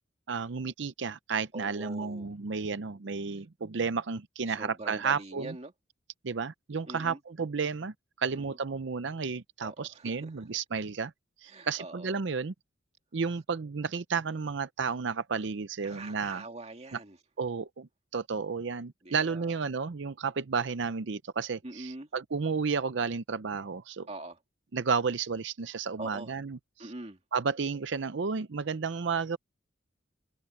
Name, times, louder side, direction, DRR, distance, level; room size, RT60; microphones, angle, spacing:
voice 1, 0.3-5.6 6.2-11.1 11.4-12.5 13.1-16.4 16.9-17.0 17.4-24.1 24.7-26.9 27.3-29.4, right 5 dB, 65° right, 0.6 m, -32 dB
voice 2, 1.5-2.3 4.5-5.7 6.8-7.2 8.3-8.6 9.6-10.5 11.5-12.2 15.8-17.2 19.0-19.5 21.6-22.1 24.1-24.4 26.0-26.4 26.8-27.2, right 2 dB, 35° right, 2.3 m, -43 dB
head